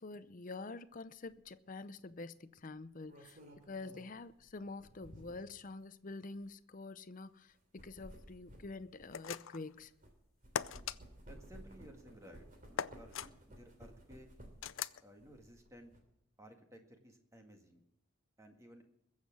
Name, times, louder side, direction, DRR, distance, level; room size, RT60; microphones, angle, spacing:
voice 1, 0.0-3.4 3.7-9.9, left 3 dB, 40° left, 0.6 m, -47 dB
sound 1, 1.3-1.5 2.7-5.6 6.3-6.4 7.5-10.1 10.4-14.8 15.2-16.0, equal, 40° right, 3.0 m, -56 dB
sound 2, 9.1-9.7 10.6-11.0 12.8-13.3 14.6-15.0, left 8 dB, 80° left, 0.5 m, -39 dB
voice 2, 11.3-13.1 13.5-14.3 15.0-15.9 16.4-17.8 18.4-18.8, right 1 dB, 15° right, 1.8 m, -57 dB
21.5 x 7.4 x 6.2 m
head